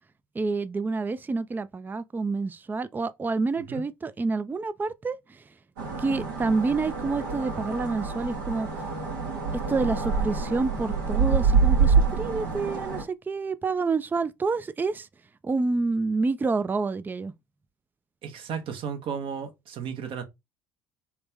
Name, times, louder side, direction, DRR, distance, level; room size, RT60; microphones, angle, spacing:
voice 1, 0.4-5.4 6.0-8.7 9.7-15.1 15.4-17.3, right 3 dB, 20° right, 0.4 m, -28 dB
sound 1, 5.8-13.0, right 5 dB, 80° right, 1.4 m, -26 dB
voice 2, 18.2-20.2, right 7 dB, 55° right, 1.1 m, -34 dB
3.2 x 3.0 x 3.5 m
hypercardioid pair, 60°, 10 cm